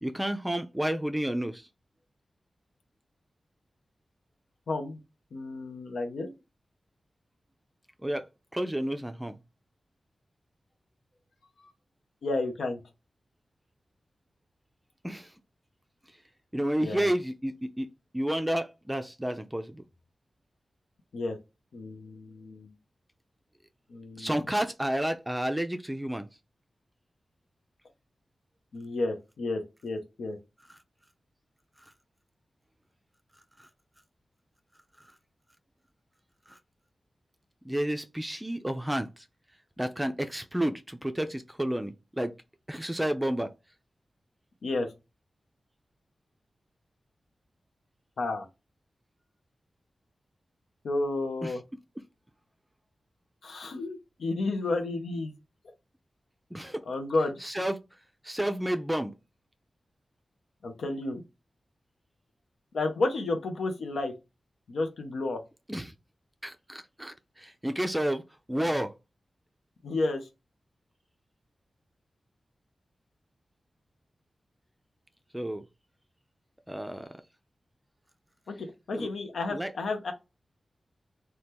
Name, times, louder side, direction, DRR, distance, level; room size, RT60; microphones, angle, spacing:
voice 1, 0.0-1.7 8.0-8.2 8.5-9.4 15.0-15.3 16.5-17.9 18.1-19.8 24.2-26.3 33.6-33.7 36.5-36.6 37.6-39.2 39.8-42.3 42.7-43.5 51.4-51.5 56.5-56.8 57.4-57.8 58.2-59.1 65.7-65.9 66.4-68.2 68.5-68.9 75.3-75.6 76.7-77.1 79.0-79.1 79.5-79.7, right 1 dB, 10° right, 0.4 m, -30 dB
voice 2, 4.7-5.0 5.3-6.3 11.6-11.7 12.2-12.8 16.8-17.1 21.1-21.4 21.7-22.7 23.9-24.3 28.7-30.4 44.6-44.9 48.2-48.5 50.8-51.6 53.4-55.3 56.9-57.4 60.6-61.2 62.7-64.1 64.7-65.4 69.8-70.3 78.5-80.1, left 2 dB, 85° left, 0.5 m, -31 dB
2.8 x 2.2 x 3.4 m
cardioid pair, 40°, 0 cm